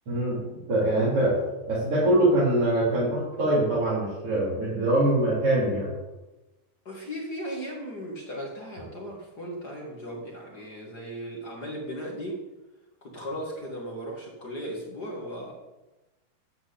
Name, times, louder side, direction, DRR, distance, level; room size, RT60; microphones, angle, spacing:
voice 1, 0.1-0.4 0.7-1.4 1.7-5.9, right 1 dB, 35° right, -9 dB, 4.0 m, -23 dB
voice 2, 6.9-12.4 13.0-15.5, equal, 35° left, -2 dB, 1.8 m, -37 dB
10.5 x 6.1 x 8.5 m, 1.1 s
omnidirectional pair, 4.5 m